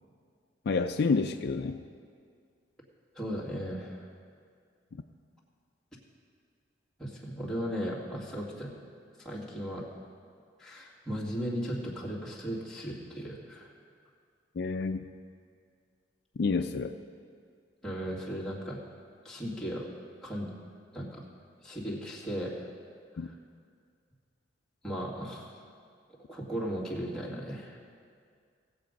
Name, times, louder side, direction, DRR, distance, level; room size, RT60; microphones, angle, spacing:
voice 1, 0.7-1.8 14.6-15.0 16.4-16.9 23.2-23.3, left 4 dB, 60° left, 7 dB, 0.4 m, -29 dB
voice 2, 3.1-4.1 7.0-8.7 9.2-9.9 10.6-13.7 17.8-18.8 19.2-19.9 20.2-20.5 20.9-21.2 21.6-22.5 23.1-23.3 24.8-25.5 26.3-27.8, equal, 5° left, -6 dB, 2.1 m, -36 dB
17.5 x 7.8 x 5.2 m, 2.1 s
head